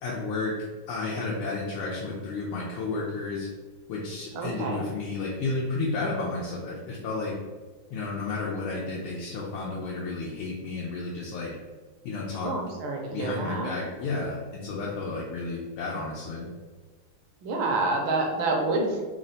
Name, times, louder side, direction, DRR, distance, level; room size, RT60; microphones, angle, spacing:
voice 1, 0.0-0.5 0.9-3.5 3.9-7.3 7.9-11.5 12.0-12.5 13.1-16.5, left 3 dB, 90° left, -5 dB, 1.6 m, -32 dB
voice 2, 4.3-4.8 12.4-13.7 17.4-19.0, right 2 dB, 75° right, 1 dB, 1.4 m, -28 dB
4.1 x 2.1 x 3.9 m, 1.4 s
omnidirectional pair, 2.4 m